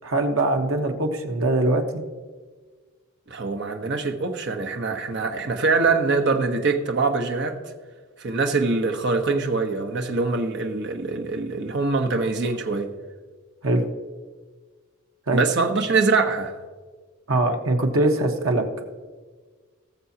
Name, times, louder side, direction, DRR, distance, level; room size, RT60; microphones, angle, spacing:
voice 1, 0.0-2.0 13.6-13.8 15.3-15.4 17.3-18.8, right 2 dB, 80° right, 3 dB, 1.3 m, -22 dB
voice 2, 3.3-7.6 8.2-12.9 15.3-16.6, right 3 dB, 60° right, 4 dB, 1.0 m, -23 dB
19.0 x 6.9 x 2.8 m, 1.4 s
head